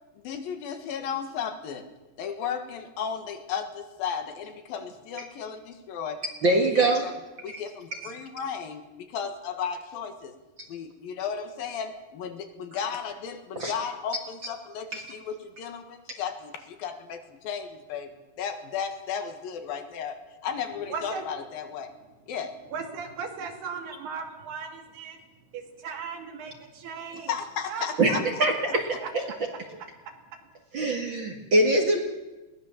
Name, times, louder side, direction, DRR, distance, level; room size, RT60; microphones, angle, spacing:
voice 1, 0.2-1.9 2.2-7.1 7.4-10.3 10.7-18.1 18.4-21.9 22.3-22.6 27.1-28.5, left 7 dB, 70° left, 7 dB, 3.2 m, -34 dB
voice 2, 6.4-7.0 7.5-7.6 8.0-8.1 13.6-13.7 14.9-15.0 28.0-28.1 28.4-28.8 29.1-29.2 30.7-32.0, right 2 dB, 45° right, 3 dB, 1.7 m, -23 dB
voice 3, 20.9-21.2 22.7-25.2 25.5-27.3 27.7-28.2 28.7-29.1 30.1-30.2, right 6 dB, 80° right, 4 dB, 4.3 m, -37 dB
22.0 x 18.0 x 7.2 m, 1.1 s
omnidirectional pair, 4.5 m